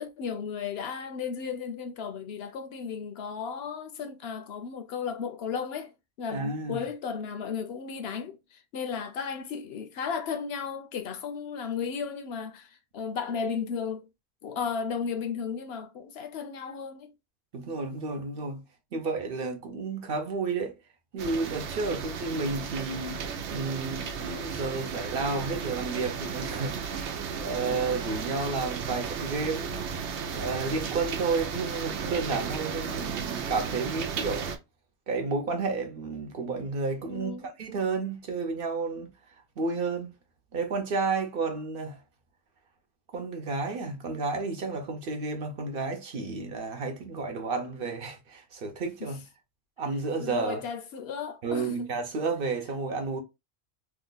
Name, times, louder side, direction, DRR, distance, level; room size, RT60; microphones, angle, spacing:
voice 1, 0.0-14.1 14.4-17.1 27.6-27.8 37.1-37.5 49.0-49.1 50.2-52.0, left 6 dB, 70° left, 0.8 m, -35 dB
voice 2, 6.3-6.9 17.5-18.6 18.9-20.7 21.1-23.2 23.5-29.7 30.3-34.5 35.1-39.1 39.6-40.1 40.5-42.0 43.1-49.2 49.8-50.6 51.4-53.2, right 3 dB, 60° right, 0.9 m, -31 dB
sound 1, 21.2-34.6, right 6 dB, 90° right, 0.9 m, -34 dB
2.9 x 2.2 x 3.8 m
omnidirectional pair, 1.1 m